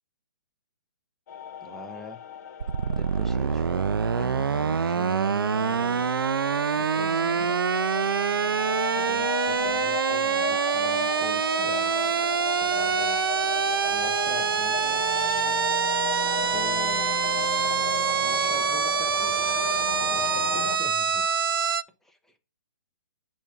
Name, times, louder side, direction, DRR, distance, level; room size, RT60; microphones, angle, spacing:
sound 1, 1.3-20.8, left 8 dB, 45° left, 0.8 m, -36 dB
voice 1, 1.6-2.2 2.9-6.1 6.8-7.5 8.9-12.0 12.5-13.2 13.8-15.1 16.4-17.1 17.8-19.3 20.0-21.2 22.0-22.4, left 1 dB, 5° left, 6 dB, 0.7 m, -44 dB
sound 2, 2.6-21.8, right 6 dB, 75° right, 0.4 m, -25 dB
7.0 x 2.6 x 5.7 m, 0.31 s
figure-of-eight pair, 125°, 12 cm